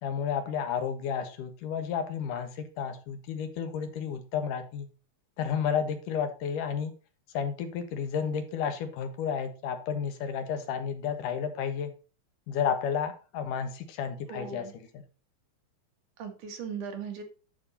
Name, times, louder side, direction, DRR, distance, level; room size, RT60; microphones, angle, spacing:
voice 1, 0.0-4.9 5.4-6.9 7.3-11.9 12.5-14.7, left 7 dB, 90° left, 8 dB, 3.0 m, -31 dB
voice 2, 14.3-14.7 16.2-17.2, right 6 dB, 75° right, 4 dB, 3.3 m, -38 dB
11.5 x 5.3 x 4.1 m, 0.35 s
omnidirectional pair, 3.6 m